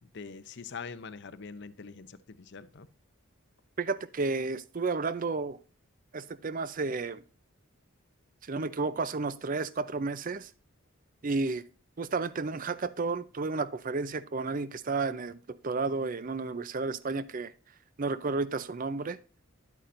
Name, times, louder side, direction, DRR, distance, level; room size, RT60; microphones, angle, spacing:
voice 1, 0.0-2.9, left 5 dB, 55° left, 0.6 m, -44 dB
voice 2, 3.8-5.6 6.1-7.2 8.4-10.5 11.2-11.6 12.0-17.5 18.0-19.2, right 3 dB, 40° right, 0.5 m, -32 dB
11.0 x 8.4 x 2.6 m
head